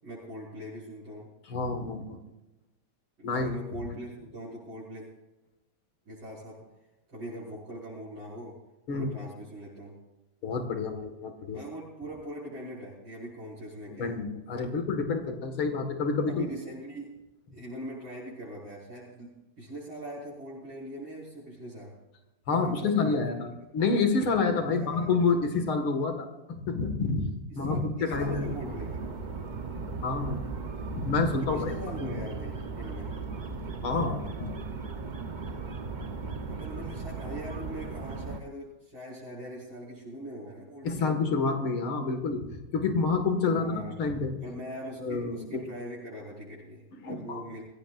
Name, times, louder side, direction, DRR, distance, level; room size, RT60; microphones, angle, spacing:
voice 1, 0.0-1.3 3.2-5.1 6.0-6.6 7.1-8.6 8.9-9.9 11.5-14.1 16.3-17.1 17.5-21.9 22.5-23.3 24.6-25.1 27.6-29.0 31.4-33.1 36.5-41.1 43.5-44.0 44.4-47.6, right 1 dB, 65° right, -9 dB, 6.6 m, -41 dB
voice 2, 1.5-2.2 3.2-3.5 8.9-9.1 10.4-11.6 14.0-16.5 22.5-28.5 30.0-30.4 30.9-32.1 33.8-34.5 40.8-42.5 42.7-44.4 45.0-45.7 47.0-47.4, left 4 dB, 80° left, 5 dB, 2.7 m, -28 dB
sound 1, 28.1-38.4, right 4 dB, 50° right, 0.5 m, -37 dB
23.5 x 16.5 x 2.5 m, 1.0 s
omnidirectional pair, 2.3 m